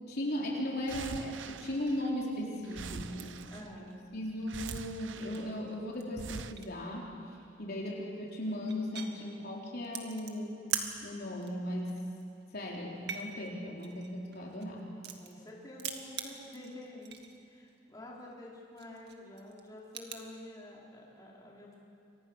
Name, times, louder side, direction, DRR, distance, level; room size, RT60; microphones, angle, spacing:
voice 1, 0.0-3.4 4.1-7.1 7.6-10.5 11.0-12.0 12.5-14.9, left 1 dB, 55° left, -2 dB, 3.8 m, -37 dB
sound 1, 0.9-2.3 2.6-3.9 4.5-5.7 6.2-6.5, right 5 dB, 80° right, 0.8 m, -44 dB
sound 2, 3.2-3.4 3.9-4.9 5.2-5.6 5.9-6.0 6.3-6.8 7.9-8.0 8.3-9.1 9.8-10.9 11.2-11.5 11.8-12.4 12.9-15.5 15.7-17.4 17.7-17.8 18.2-18.4 18.8-20.2, right 8 dB, 60° right, 2.2 m, -41 dB
voice 2, 3.5-4.1 7.9-8.1 15.2-17.2 17.5-21.8, left 1 dB, 20° left, -4 dB, 4.8 m, -49 dB
29.5 x 25.0 x 6.5 m, 2.7 s
head